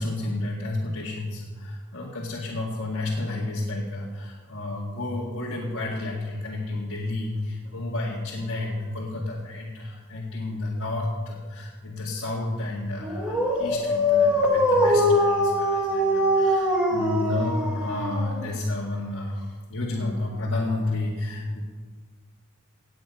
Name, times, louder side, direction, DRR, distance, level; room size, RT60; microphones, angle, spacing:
voice 1, 0.0-21.6, left 2 dB, 60° left, -6 dB, 2.0 m, -31 dB
Dog, 13.0-18.7, left 1 dB, 5° right, 1.6 m, -22 dB
18.5 x 8.1 x 5.5 m, 1.5 s
head